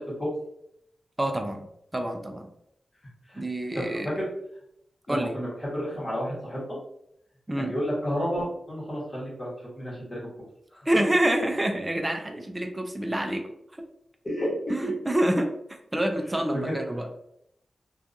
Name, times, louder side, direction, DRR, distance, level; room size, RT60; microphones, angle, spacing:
voice 1, 1.2-1.6 1.9-2.5 3.4-4.1 5.1-5.3 7.5-7.7 10.9-13.4 14.7-15.5 15.9-17.1, right 1 dB, 15° right, 4 dB, 0.3 m, -27 dB
voice 2, 3.7-4.3 5.1-6.6 7.6-9.5 9.7-10.2 10.7-10.8 14.2-14.5 14.8-14.9 16.3-16.8, equal, 30° left, -7 dB, 1.1 m, -31 dB
2.6 x 2.3 x 2.5 m, 0.76 s
wide cardioid pair, 105°, 0 cm